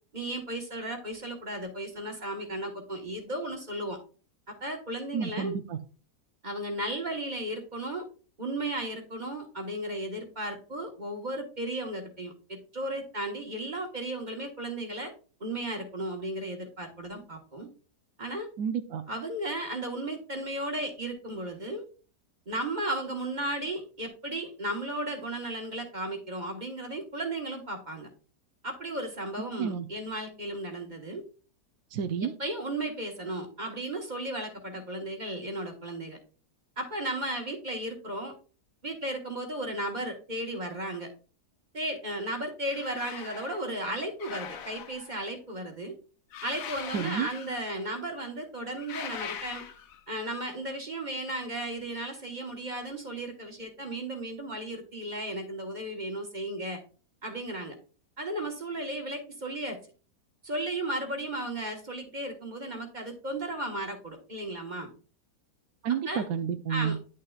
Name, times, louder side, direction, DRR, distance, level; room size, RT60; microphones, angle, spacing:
voice 1, 0.1-4.0 4.5-5.6 6.4-8.1 8.4-15.1 15.4-17.7 18.2-18.5 19.1-21.9 22.5-28.1 28.6-31.2 32.4-36.2 36.8-38.3 38.8-41.1 41.7-46.0 46.4-49.6 50.1-56.8 57.2-57.8 58.2-59.8 60.4-64.9 66.1-66.3 66.7-67.0, right 1 dB, 30° right, 1.2 m, -35 dB
voice 2, 5.1-5.8 18.6-19.0 29.6-29.9 31.9-32.3 46.9-47.3 65.8-67.0, right 7 dB, 70° right, 1.0 m, -30 dB
sound 1, 42.6-43.6 44.2-45.2 46.3-47.9 48.8-50.0, left 8 dB, 65° left, 1.1 m, -41 dB
10.5 x 6.5 x 2.4 m
omnidirectional pair, 1.7 m